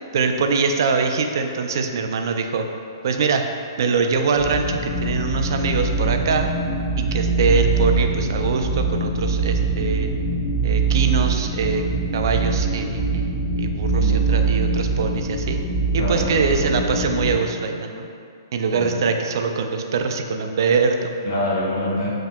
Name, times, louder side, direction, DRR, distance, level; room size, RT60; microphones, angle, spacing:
voice 1, 0.1-2.7 3.0-3.5 3.8-6.5 7.0-10.1 10.6-11.8 12.1-15.6 15.9-18.1 18.5-21.1, right 4 dB, 65° right, 5 dB, 0.3 m, -23 dB
sound 1, 4.3-17.3, right 3 dB, 20° left, 1.2 m, -23 dB
voice 2, 16.0-16.5 18.7-19.1 21.2-22.1, left 1 dB, 60° left, -4 dB, 0.9 m, -25 dB
5.3 x 2.8 x 2.2 m, 2.4 s
hypercardioid pair, 135°, 2 cm